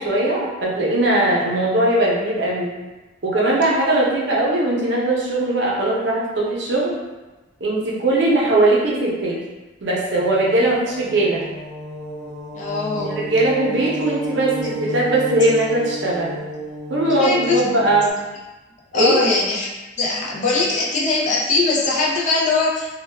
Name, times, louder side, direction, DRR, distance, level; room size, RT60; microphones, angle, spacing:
voice 1, 0.0-2.7 3.2-6.9 7.6-9.4 9.8-11.4 12.9-16.3 16.9-18.1 18.9-19.2, right 2 dB, 65° right, -4 dB, 0.6 m, -19 dB
sound 1, 10.1-18.1, equal, 15° left, 0.8 m, -32 dB
voice 2, 12.5-13.2 17.1-17.6 18.9-19.7 20.0-22.9, left 3 dB, 40° left, -3 dB, 0.4 m, -21 dB
2.2 x 2.2 x 3.2 m, 1.1 s
head